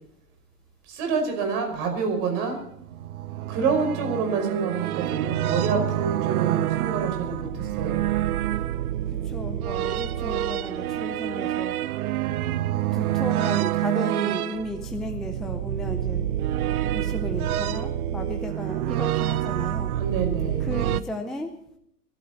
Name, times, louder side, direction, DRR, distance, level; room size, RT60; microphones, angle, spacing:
voice 1, 0.9-2.6 3.5-8.1 19.9-20.8, right 5 dB, 45° right, 5 dB, 5.6 m, -27 dB
sound 1, 2.7-21.0, right 13 dB, 65° right, 0.8 m, -27 dB
voice 2, 9.1-11.8 12.9-16.3 16.9-19.9 20.6-21.5, left 1 dB, ahead, 4 dB, 0.5 m, -34 dB
25.0 x 12.5 x 4.2 m, 0.74 s
hypercardioid pair, 130°, 47 cm